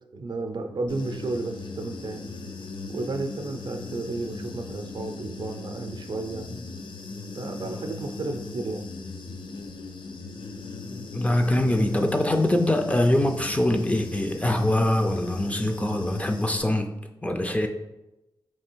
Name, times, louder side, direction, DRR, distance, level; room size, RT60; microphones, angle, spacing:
voice 1, 0.1-2.2 2.9-6.5 7.3-8.8 17.4-17.6, right 3 dB, 65° right, 0.5 m, -33 dB
Human voice / Buzz, 0.9-16.6, left 3 dB, 80° left, 0.5 m, -38 dB
voice 2, 11.1-16.9 17.2-17.7, left 1 dB, 15° left, 0.4 m, -23 dB
3.3 x 3.2 x 4.5 m
wide cardioid pair, 135°, 8 cm